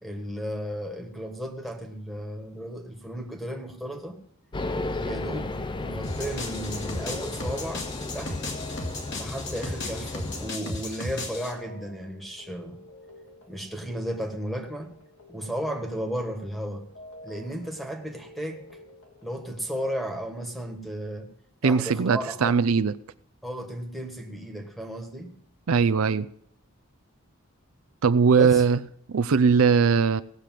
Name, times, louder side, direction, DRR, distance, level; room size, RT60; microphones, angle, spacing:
voice 1, 0.0-4.2 5.0-7.9 8.1-8.4 9.1-12.8 13.5-14.9 15.3-16.8 17.2-18.7 19.2-21.3 21.6-22.6 23.4-25.3 28.3-28.6, equal, ahead, 1.5 m, -34 dB
sound 1, 4.5-10.5, left 2 dB, 20° left, 0.5 m, -34 dB
sound 2, 6.0-11.5, left 2 dB, 55° left, 2.5 m, -35 dB
sound 3, 6.8-20.2, equal, 80° left, 2.5 m, -49 dB
voice 2, 21.6-22.9 25.7-26.3 28.0-28.8 29.1-30.2, right 5 dB, 75° right, 0.5 m, -20 dB
17.5 x 6.6 x 7.6 m
head